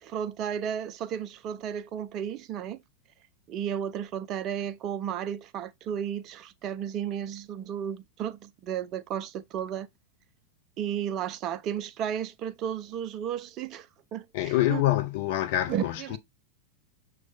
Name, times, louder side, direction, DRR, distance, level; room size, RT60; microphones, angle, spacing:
voice 1, 0.0-2.8 3.5-9.9 10.8-14.8 15.7-16.2, right 9 dB, 35° right, 0.3 m, -33 dB
voice 2, 14.3-16.2, left 14 dB, 50° left, 0.4 m, -26 dB
6.0 x 2.2 x 2.5 m
figure-of-eight pair, 90°, 0 cm